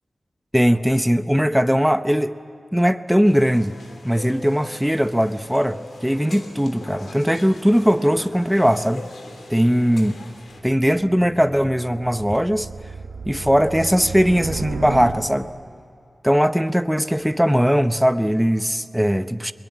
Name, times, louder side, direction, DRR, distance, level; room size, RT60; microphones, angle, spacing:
voice 1, 0.5-2.4 2.7-3.7 4.0-9.1 9.5-10.1 10.6-12.7 13.3-15.5 16.2-19.5, equal, 5° right, 11 dB, 0.8 m, -19 dB
sound 1, 3.2-10.6, left 2 dB, 85° left, 3.2 m, -41 dB
sound 2, 10.5-15.7, right 4 dB, 90° right, 1.3 m, -34 dB
22.0 x 21.5 x 8.6 m, 2.5 s
wide cardioid pair, 65°, 0 cm